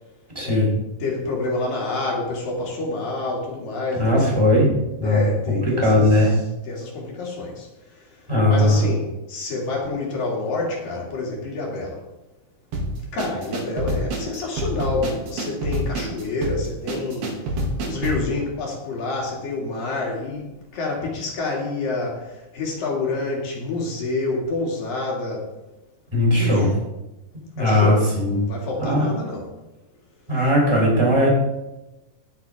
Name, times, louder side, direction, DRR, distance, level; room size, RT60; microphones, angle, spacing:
voice 1, 0.3-0.7 4.0-4.7 5.0-5.2 5.5-6.3 8.3-8.8 26.1-26.7 27.6-28.4 28.8-29.1 30.3-31.3, left 1 dB, 5° right, -3 dB, 3.7 m, -18 dB
voice 2, 1.0-4.5 5.0-6.3 6.7-7.7 8.5-12.0 13.1-17.4 17.9-25.5 26.4-26.7 27.6-29.5, left 3 dB, 65° left, -2 dB, 4.1 m, -28 dB
sound 1, 12.7-18.3, right 1 dB, 85° right, 4.4 m, -27 dB
18.5 x 7.1 x 3.6 m, 0.99 s
omnidirectional pair, 4.4 m